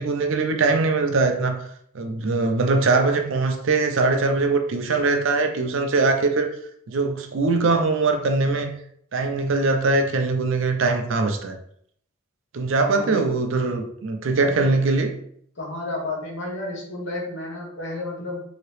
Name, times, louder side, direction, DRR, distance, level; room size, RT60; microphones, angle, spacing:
voice 1, 0.0-1.6 1.9-6.5 6.9-8.7 9.1-11.6 12.5-15.1, right 3 dB, 60° right, 5 dB, 0.4 m, -22 dB
voice 2, 12.8-13.3 14.4-14.7 15.6-18.4, left 2 dB, 55° left, -1 dB, 0.9 m, -31 dB
2.9 x 2.8 x 3.1 m, 0.67 s
head